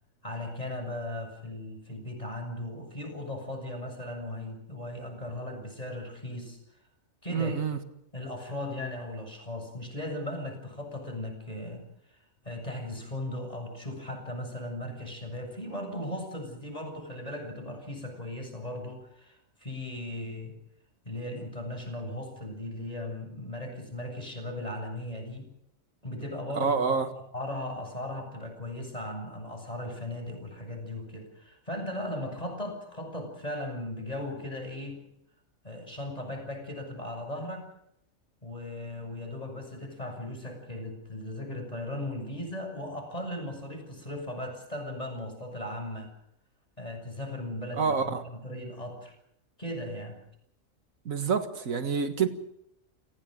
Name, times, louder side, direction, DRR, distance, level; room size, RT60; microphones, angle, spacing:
voice 1, 0.2-6.6 7.2-7.6 8.1-12.2 12.4-20.5 21.0-25.5 26.0-27.1 27.3-35.0 35.6-37.7 38.4-46.1 46.8-49.1 49.6-50.2, left 1 dB, 25° left, 7.1 m, -37 dB
voice 2, 7.3-7.8 26.6-27.1 47.7-48.2 51.1-52.3, right 5 dB, 80° right, 2.1 m, -27 dB
29.0 x 18.5 x 6.6 m
omnidirectional pair, 1.4 m